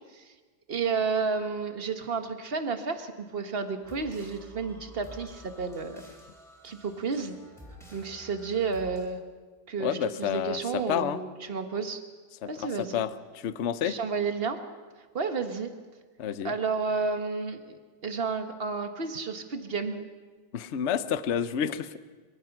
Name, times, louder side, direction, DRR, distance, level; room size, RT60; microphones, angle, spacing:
voice 1, 0.7-6.0 6.6-7.4 7.9-9.2 9.7-12.0 12.5-13.1 13.8-14.6 15.1-15.7 16.4-20.1, right 4 dB, 30° right, 7 dB, 1.3 m, -31 dB
sound 1, 3.8-9.1, equal, ahead, 4.1 m, -50 dB
voice 2, 9.8-11.2 12.4-14.0 16.2-16.5 20.5-22.0, left 8 dB, 75° left, 13 dB, 0.6 m, -30 dB
23.5 x 22.0 x 6.0 m, 1.4 s
omnidirectional pair, 2.3 m